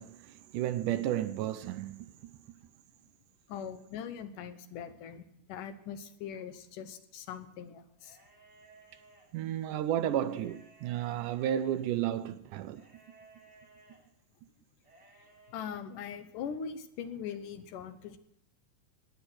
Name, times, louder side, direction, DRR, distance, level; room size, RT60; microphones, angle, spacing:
voice 1, 0.0-2.3 9.3-12.9, right 11 dB, 80° right, 2.1 m, -33 dB
voice 2, 3.5-5.2 5.5-8.2 15.5-18.2, left 7 dB, 75° left, 2.4 m, -41 dB
sound 1, 7.9-9.2 10.2-11.9 12.7-14.0 14.8-15.7, right 3 dB, 20° right, 4.3 m, -59 dB
19.0 x 9.5 x 6.2 m
omnidirectional pair, 3.9 m